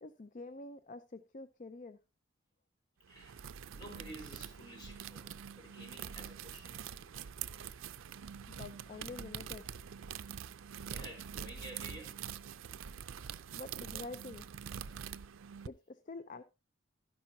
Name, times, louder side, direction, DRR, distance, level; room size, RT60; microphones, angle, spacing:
voice 1, 0.0-2.0 8.5-9.7 13.5-14.4 15.6-16.4, left 3 dB, 40° left, 0.5 m, -47 dB
voice 2, 3.1-3.4 3.7-5.3 5.5-7.0 10.9-12.2 13.9-14.0, right 1 dB, 20° left, 3.5 m, -51 dB
sound 1, 3.1-15.7, right 8 dB, 85° right, 0.5 m, -45 dB
12.0 x 10.5 x 2.7 m
head